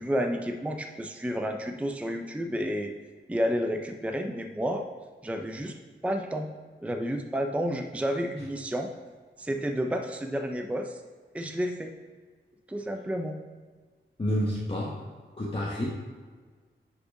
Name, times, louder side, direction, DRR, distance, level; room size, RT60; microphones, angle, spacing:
voice 1, 0.0-2.9 3.3-4.9 5.2-5.8 6.0-6.5 6.8-8.9 9.4-11.0 11.3-11.9 12.7-13.4, equal, 5° right, 4 dB, 0.5 m, -30 dB
voice 2, 14.2-15.1 15.4-15.9, equal, 25° left, -5 dB, 1.1 m, -29 dB
5.4 x 4.4 x 5.2 m, 1.5 s
cardioid pair, 60°, 20 cm